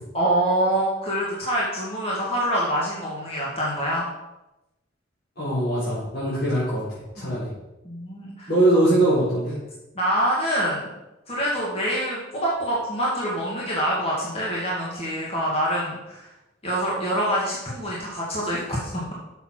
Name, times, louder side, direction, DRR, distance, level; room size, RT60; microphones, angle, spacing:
voice 1, 0.1-4.1 6.2-6.3 7.2-7.4 7.8-8.5 10.0-10.9 11.3-16.3 16.6-19.1, equal, 30° left, -5 dB, 2.0 m, -25 dB
voice 2, 5.4-6.8 7.1-7.5 8.5-9.6, right 1 dB, 55° left, -11 dB, 3.9 m, -21 dB
6.9 x 6.9 x 6.1 m, 0.97 s
head